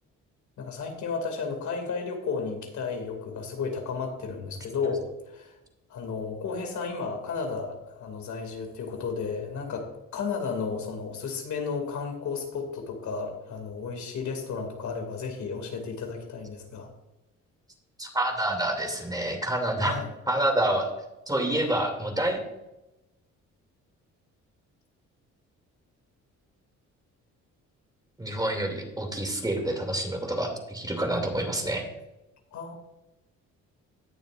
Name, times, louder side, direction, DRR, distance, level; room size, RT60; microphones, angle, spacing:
voice 1, 0.6-5.6 5.9-16.9 19.8-20.1 21.5-21.6 32.5-32.7, left 5 dB, 70° left, 3 dB, 2.5 m, -33 dB
voice 2, 18.0-20.0 20.3-20.9 21.3-22.4 28.2-31.8, right 1 dB, 10° right, 2 dB, 2.6 m, -27 dB
18.0 x 7.0 x 2.5 m, 0.96 s
cardioid pair, 90°, 30 cm